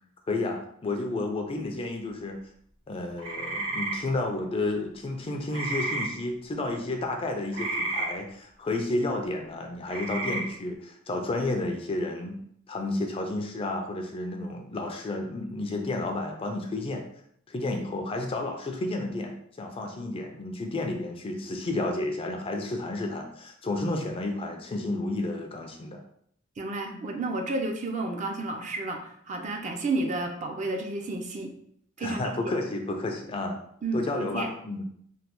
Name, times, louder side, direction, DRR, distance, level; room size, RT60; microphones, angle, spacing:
voice 1, 0.3-2.4 2.9-12.3 12.7-17.0 17.5-26.0 26.9-27.0 32.0-33.6 33.9-34.8, left 2 dB, 25° left, 3 dB, 0.3 m, -31 dB
sound 1, 3.2-3.9 5.5-6.1 7.5-8.1 9.9-10.4, right 2 dB, 90° right, 1.2 m, -31 dB
voice 2, 26.6-31.5 32.0-32.3 33.8-34.5, right 2 dB, 35° right, 3 dB, 0.4 m, -31 dB
3.2 x 2.2 x 2.9 m, 0.68 s
head